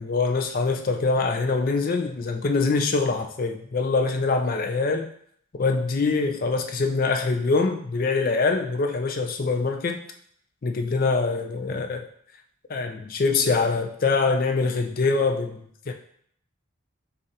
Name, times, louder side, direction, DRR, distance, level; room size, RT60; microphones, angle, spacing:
voice 1, 0.0-5.1 5.5-10.0 10.6-12.1 12.7-15.9, left 4 dB, 40° left, 5 dB, 0.4 m, -24 dB
6.3 x 2.5 x 2.8 m, 0.64 s
head